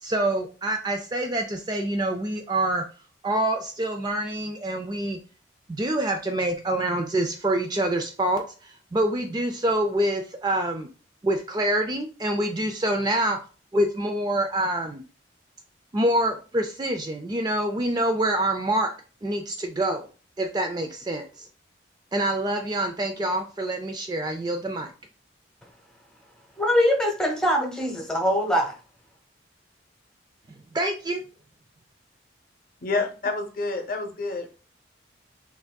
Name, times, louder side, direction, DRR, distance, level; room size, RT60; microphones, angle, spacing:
voice 1, 0.0-2.9 3.2-5.2 5.7-10.9 11.2-13.4 13.7-15.0 15.9-18.9 19.2-20.1 20.4-21.5 22.1-24.9 30.7-31.2, right 1 dB, 20° right, 5 dB, 0.3 m, -26 dB
voice 2, 26.6-28.8, equal, 5° left, 0 dB, 0.9 m, -23 dB
voice 3, 32.8-34.5, left 3 dB, 50° left, 5 dB, 0.7 m, -28 dB
5.8 x 2.6 x 2.2 m, 0.35 s
head